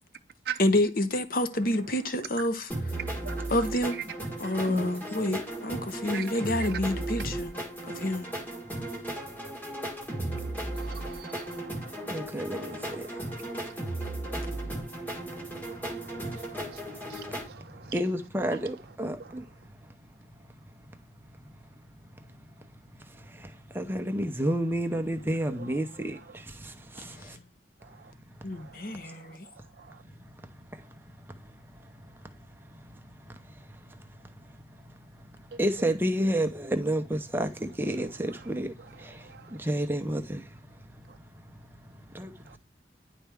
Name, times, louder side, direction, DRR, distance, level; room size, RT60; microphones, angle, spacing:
voice 1, 0.6-3.0 3.5-4.0 4.4-7.5 7.9-8.3 27.1-27.4 28.4-29.5, left 1 dB, 50° left, 0.8 m, -28 dB
sound 1, 2.7-17.5, right 1 dB, 10° left, 1.5 m, -36 dB
voice 2, 10.8-11.8 12.8-13.3 17.1-17.6, right 9 dB, 60° right, 0.4 m, -40 dB
voice 3, 12.1-13.2 14.5-15.9 16.3-16.4 16.9-17.4 17.7-19.5 23.1-27.4 30.2-30.3 30.7-30.8 33.3-33.4 33.9-34.0 35.6-40.5 42.1-42.6, right 1 dB, 10° right, 0.7 m, -31 dB
10.0 x 4.3 x 3.5 m
head